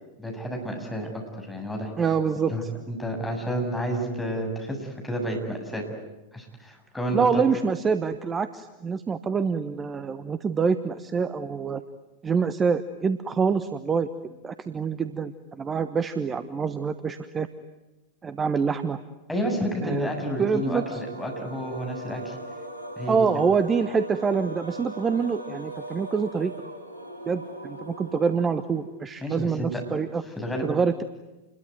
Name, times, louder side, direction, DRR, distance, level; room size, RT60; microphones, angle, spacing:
voice 1, 0.2-1.9 2.5-5.8 6.3-7.5 19.3-22.4 23.0-23.4 29.2-29.8 30.2-30.7, equal, 5° left, 1 dB, 7.4 m, -30 dB
voice 2, 2.0-2.7 7.1-11.8 12.2-14.1 14.4-17.5 18.2-19.0 19.8-20.1 20.4-21.0 23.1-26.5 27.3-30.2 30.6-31.0, right 5 dB, 20° right, 12 dB, 1.1 m, -26 dB
sound 1, 19.8-29.2, right 1 dB, 80° right, 5.9 m, -40 dB
28.5 x 22.0 x 9.3 m, 1.1 s
figure-of-eight pair, 90°, 0 cm